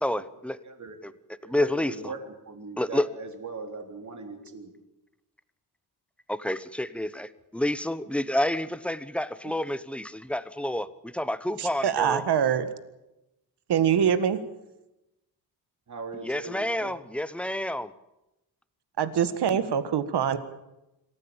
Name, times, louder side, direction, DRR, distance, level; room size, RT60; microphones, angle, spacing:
voice 1, 0.0-0.6 1.5-1.9 2.8-3.1 6.3-10.9 11.1-12.2 16.2-17.9, left 1 dB, 5° left, 15 dB, 0.9 m, -29 dB
voice 2, 0.6-1.0 1.4-2.2 2.5-4.7 15.9-16.9, right 4 dB, 45° right, 4 dB, 3.8 m, -39 dB
voice 3, 11.6-12.7 13.7-14.4 19.0-20.4, right 8 dB, 75° right, 12 dB, 1.8 m, -24 dB
26.5 x 15.0 x 8.9 m, 0.94 s
wide cardioid pair, 130°, 40 cm